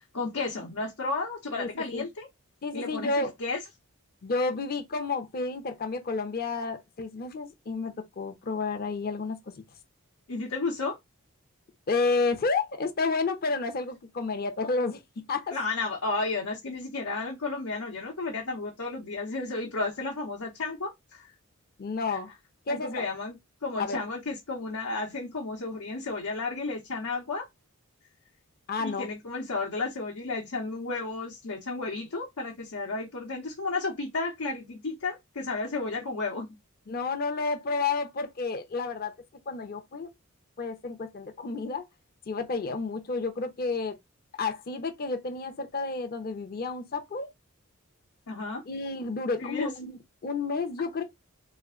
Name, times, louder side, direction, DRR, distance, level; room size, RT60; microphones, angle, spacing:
voice 1, 0.0-2.3 2.7-3.6 10.3-11.0 15.5-21.3 22.1-22.2 22.7-27.5 28.8-36.5 48.3-48.6 49.4-49.7, left 3 dB, 90° left, 0.9 m, -33 dB
voice 2, 1.6-2.0 2.6-3.3 4.2-9.4 11.9-15.0 15.3-15.5 21.8-22.3 22.7-23.0 23.8-24.0 28.7-29.1 36.9-39.1 39.5-40.1 40.6-41.8 42.3-43.9 44.4-47.3 48.7-51.0, left 4 dB, 45° left, 0.5 m, -30 dB
3.2 x 2.1 x 3.6 m
head